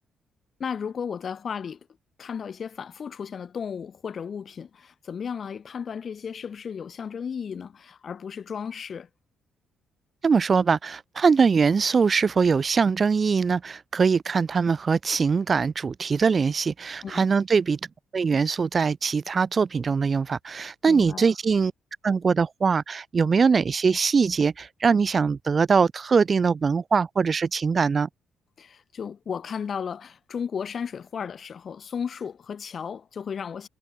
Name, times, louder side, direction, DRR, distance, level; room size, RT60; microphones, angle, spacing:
voice 1, 0.6-1.8 2.2-9.1 17.0-17.3 20.9-21.3 28.6-33.7, left 7 dB, 50° left, 3.1 m, -34 dB
voice 2, 10.2-17.8 18.1-21.7 22.0-28.1, right 5 dB, 40° right, 0.5 m, -22 dB
cardioid pair, 90°, 0 cm